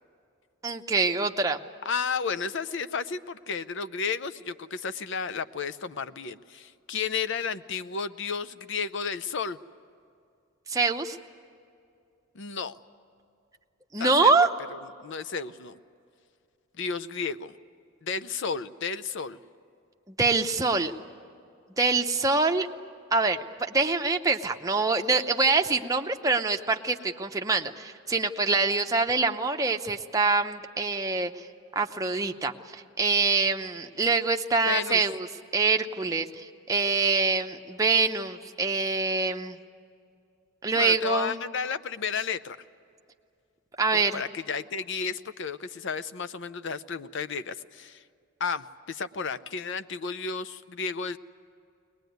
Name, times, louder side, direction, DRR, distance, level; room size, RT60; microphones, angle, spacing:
voice 1, 0.6-1.6 10.7-11.2 13.9-14.5 20.1-20.9 21.8-22.7 23.1-31.4 31.8-35.3 35.5-39.6 40.6-41.4 43.8-44.2, right 3 dB, 15° right, 4 dB, 0.7 m, -25 dB
voice 2, 1.8-9.6 12.3-12.7 14.0-14.3 14.7-15.8 16.8-17.6 18.0-19.4 34.7-35.0 40.7-42.6 43.9-48.0 48.4-51.2, left 5 dB, 60° left, 13 dB, 0.6 m, -32 dB
22.0 x 20.0 x 9.4 m, 2.4 s
head